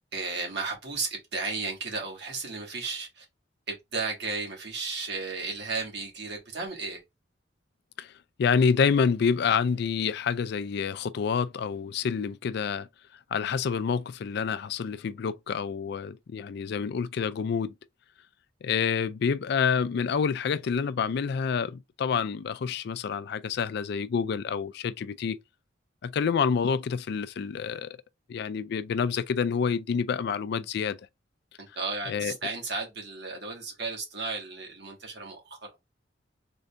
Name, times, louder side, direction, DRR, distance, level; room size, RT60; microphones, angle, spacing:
voice 1, 0.1-3.2 3.7-7.0 31.6-35.6, right 4 dB, 60° right, 1.5 m, -34 dB
voice 2, 8.4-12.9 13.3-17.7 18.6-25.4 26.0-27.9 28.3-31.0 32.1-32.3, left 6 dB, 60° left, 0.3 m, -28 dB
3.8 x 2.6 x 3.3 m
head